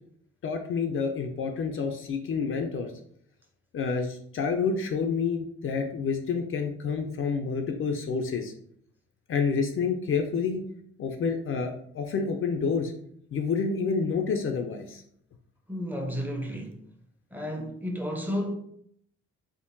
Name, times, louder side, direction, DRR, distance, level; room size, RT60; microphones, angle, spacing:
voice 1, 0.4-2.9 3.7-8.5 9.3-10.7 11.0-12.9 13.3-15.0, left 5 dB, 45° left, 0.4 m, -28 dB
voice 2, 15.7-16.8 17.3-18.5, equal, 5° right, 0.6 m, -32 dB
3.6 x 2.1 x 2.6 m
supercardioid pair, 70°, 30 cm